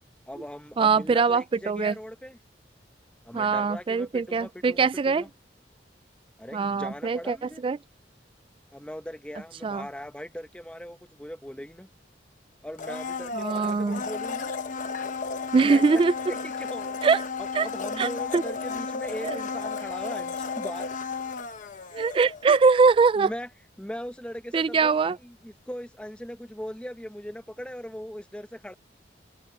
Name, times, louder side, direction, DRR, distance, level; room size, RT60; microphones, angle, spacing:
voice 1, 0.3-2.4 3.2-5.3 6.4-7.6 8.7-11.9 12.6-14.5 15.6-16.0 16.3-17.0 17.4-20.9 23.2-23.5 23.8-25.0 25.2-28.7, equal, 5° left, 1.1 m, -39 dB
voice 2, 0.8-2.0 3.3-5.2 6.5-7.8 9.6-9.9 13.3-14.0 15.5-16.1 17.0-17.2 17.5-17.7 18.0-18.4 19.2-19.4 21.9-23.3 24.5-25.2, right 4 dB, 30° right, 0.3 m, -22 dB
Domestic sounds home sounds, 12.8-22.7 23.0-23.1, left 4 dB, 45° left, 1.0 m, -33 dB
head